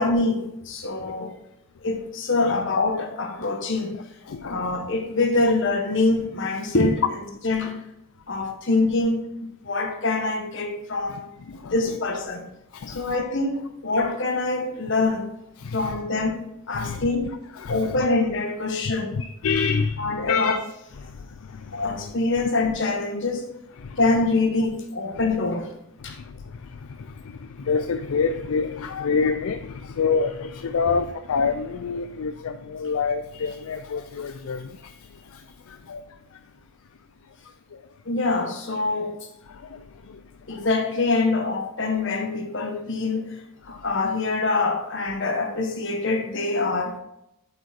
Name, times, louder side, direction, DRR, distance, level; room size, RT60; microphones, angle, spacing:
voice 1, 0.0-1.3 1.8-4.0 4.4-7.0 7.4-7.8 8.3-9.3 9.6-11.3 11.7-12.4 12.9-15.3 15.7-17.3 17.7-19.3 20.0-20.5 21.7-23.5 24.0-25.7 26.0-26.2 38.0-39.2 40.5-47.0, left 3 dB, 60° left, 1.3 m, -25 dB
voice 2, 4.3-4.7 11.1-11.2 11.5-12.0 12.7-13.2 15.6-16.0 16.7-18.1 19.1-20.6 21.0-22.1 22.4-22.5 23.8-24.0 25.1-25.2 26.0-36.4 37.3-37.4 37.7-37.8 39.4-40.7 42.6-42.7 43.7-43.9, left 5 dB, 75° left, 0.4 m, -28 dB
7.7 x 5.5 x 4.4 m
head